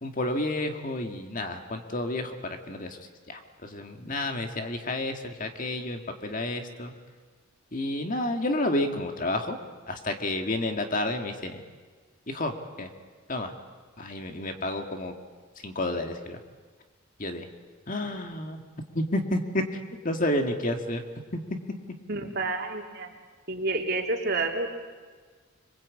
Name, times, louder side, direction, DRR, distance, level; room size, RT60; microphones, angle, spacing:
voice 1, 0.0-6.9 7.7-9.6 9.9-11.6 12.3-12.9 13.3-13.5 14.0-15.1 15.6-16.4 17.2-17.5 17.9-18.6 18.9-19.6 20.0-21.0 21.3-21.6, left 1 dB, 40° left, 5 dB, 2.0 m, -30 dB
voice 2, 22.1-23.1 23.5-24.7, right 3 dB, 50° right, 1 dB, 3.3 m, -29 dB
25.5 x 23.0 x 8.5 m, 1.5 s
head